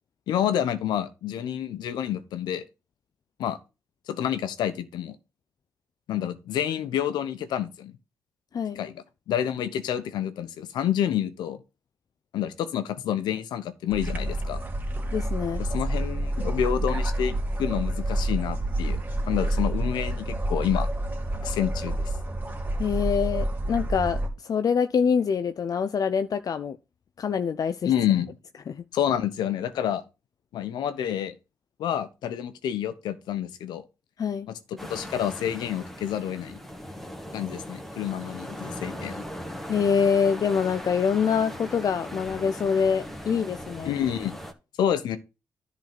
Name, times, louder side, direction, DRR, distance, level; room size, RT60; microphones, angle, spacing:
voice 1, 0.3-2.6 3.4-3.6 4.1-5.2 6.1-7.9 8.7-11.6 12.3-14.6 15.6-19.0 19.3-20.9 21.4-22.1 27.9-28.3 28.9-30.0 30.5-31.3 31.8-33.8 34.5-36.6 37.3-39.2 43.8-44.4 44.8-45.2, left 10 dB, 85° left, 1.0 m, -28 dB
sound 1, 13.9-24.3, right 1 dB, 25° right, 2.6 m, -28 dB
voice 2, 15.1-15.6 22.8-26.8 27.2-27.9 28.7-28.8 34.2-34.5 39.7-43.9, left 6 dB, 60° left, 0.5 m, -25 dB
sound 2, 34.8-44.5, equal, 5° left, 1.9 m, -39 dB
10.5 x 4.0 x 6.0 m
supercardioid pair, 55°, 7 cm